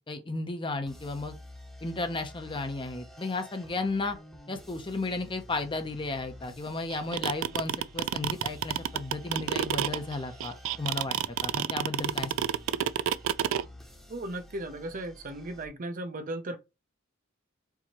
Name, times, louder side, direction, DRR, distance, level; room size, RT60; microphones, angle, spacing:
voice 1, 0.1-1.3 1.8-4.2 4.5-11.2 11.4-12.5, left 3 dB, 25° left, 0.6 m, -34 dB
sound 1, 0.9-15.7, left 1 dB, ahead, 0.9 m, -50 dB
sound 2, 6.9-13.6, right 10 dB, 85° right, 0.3 m, -28 dB
voice 2, 14.1-16.6, right 1 dB, 45° right, 0.6 m, -36 dB
4.6 x 2.8 x 2.9 m
head